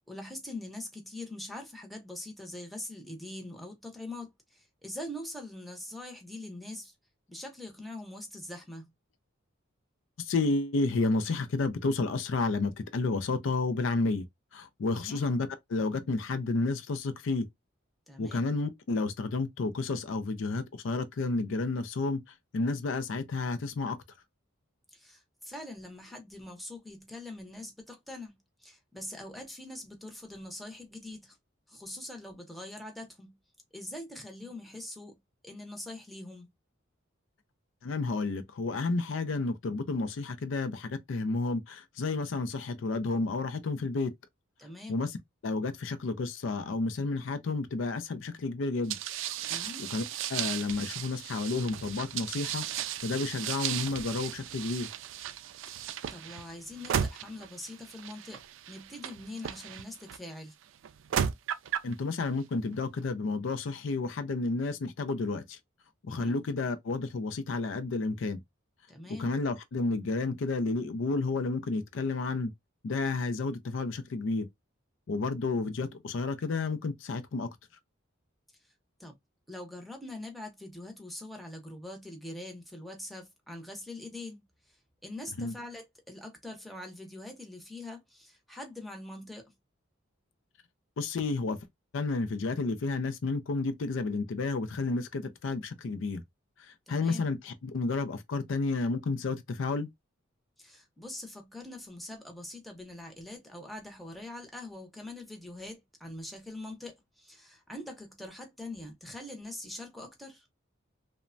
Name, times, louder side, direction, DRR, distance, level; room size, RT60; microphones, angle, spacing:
voice 1, 0.1-6.9 7.3-8.9 14.9-15.3 18.1-18.5 24.9-28.3 28.6-31.4 31.7-33.4 33.7-35.2 35.4-36.5 44.6-45.1 49.5-49.8 55.7-58.4 58.7-60.5 66.1-66.4 68.9-69.4 79.0-79.1 79.5-84.4 85.0-89.5 96.9-97.3 100.6-110.5, left 1 dB, ahead, 0.7 m, -43 dB
voice 2, 10.2-14.2 14.5-17.5 18.2-22.2 22.5-24.0 37.8-44.1 44.9-45.2 45.4-49.0 49.5-50.0 50.3-54.9 61.8-65.6 66.1-68.4 69.2-72.5 72.8-74.5 75.1-77.5 85.4-85.5 91.0-91.6 91.9-96.2 96.9-99.9, left 3 dB, 70° left, 0.4 m, -31 dB
sound 1, 48.9-60.2 60.8-61.9, right 9 dB, 70° right, 0.3 m, -35 dB
3.1 x 2.1 x 2.5 m
head